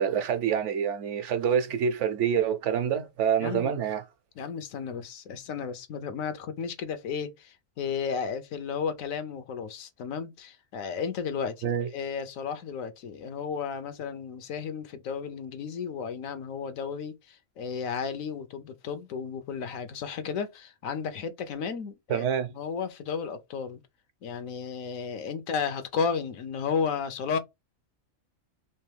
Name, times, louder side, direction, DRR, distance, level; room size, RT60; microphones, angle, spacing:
voice 1, 0.0-4.0 11.6-11.9 22.1-22.5, right 8 dB, 65° right, 0.9 m, -26 dB
voice 2, 3.4-3.7 4.4-22.2 22.5-23.8 24.2-27.4, left 6 dB, 80° left, 1.1 m, -33 dB
3.3 x 3.0 x 3.2 m
omnidirectional pair, 1.4 m